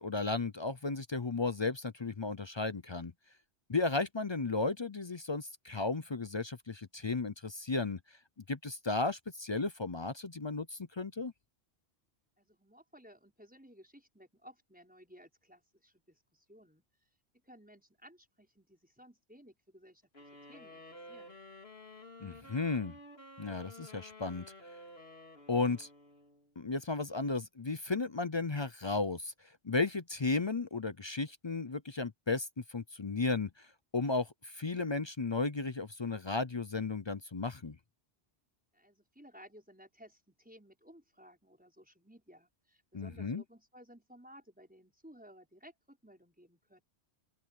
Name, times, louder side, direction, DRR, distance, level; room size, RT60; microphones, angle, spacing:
voice 1, 0.0-3.1 3.7-8.0 8.5-11.3 22.2-22.9 23.4-24.5 25.5-25.9 26.6-29.3 29.6-33.7 33.9-37.8 42.9-43.4, left 3 dB, 30° left, 0.5 m, -34 dB
voice 2, 12.4-16.8 17.4-21.4 38.7-46.8, equal, 10° right, 5.7 m, -58 dB
sound 1, 20.1-26.5, left 1 dB, 65° left, 3.3 m, -52 dB
omnidirectional pair, 1.1 m